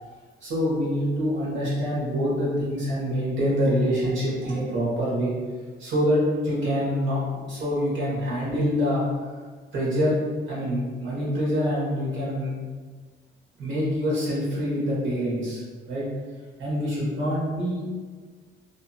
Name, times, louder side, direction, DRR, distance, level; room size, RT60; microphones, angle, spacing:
voice 1, 0.4-5.3 5.8-7.2 7.5-9.0 9.7-10.2 10.5-12.6 13.6-15.6 15.9-16.1 16.6-17.9, equal, 75° right, -7 dB, 1.3 m, -25 dB
2.8 x 2.5 x 2.3 m, 1.5 s
cardioid pair, 90°, 20 cm